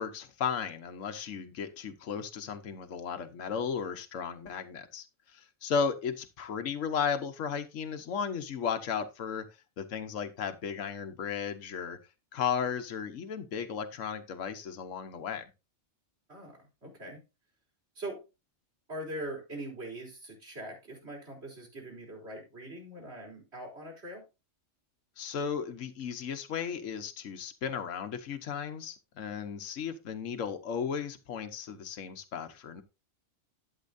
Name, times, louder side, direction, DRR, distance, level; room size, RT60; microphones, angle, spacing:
voice 1, 0.0-5.0 5.3-9.5 9.8-12.0 12.3-15.5 25.2-32.8, left 7 dB, 75° left, 8 dB, 1.4 m, -35 dB
voice 2, 16.3-17.2 18.0-18.2 18.9-24.2, right 1 dB, 55° right, 1 dB, 4.1 m, -42 dB
12.0 x 8.0 x 2.5 m, 0.27 s
omnidirectional pair, 1.3 m